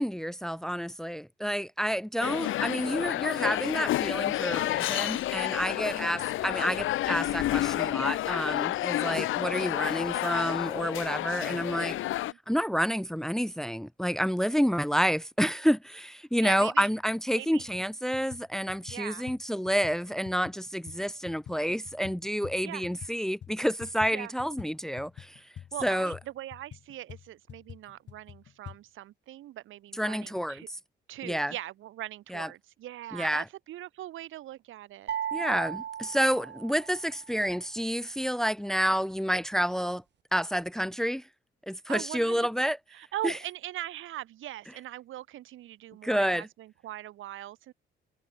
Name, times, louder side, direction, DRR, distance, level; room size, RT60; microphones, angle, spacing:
voice 1, 0.0-12.0 12.5-25.4 25.8-26.2 30.0-30.6 31.2-31.5 32.3-32.5 33.1-33.4 35.3-40.0 40.3-41.2 41.7-42.8 43.2-43.3 46.0-46.5, equal, ahead, 1.2 m, -29 dB
sound 1, 2.2-12.3, left 14 dB, 80° left, 1.3 m, -30 dB
voice 2, 5.5-6.3 11.4-12.4 16.4-16.9 17.3-17.7 18.9-19.3 22.6-22.9 24.1-24.3 25.7-30.7 31.1-35.1 41.9-42.5 42.9-47.7, right 14 dB, 85° right, 5.8 m, -41 dB
sound 2, 17.0-17.1 17.5-17.9 18.1-23.1 23.4-28.8, left 9 dB, 60° left, 7.8 m, -47 dB
sound 3, 35.1-37.2, right 10 dB, 60° right, 2.4 m, -36 dB
cardioid pair, 90°, 20 cm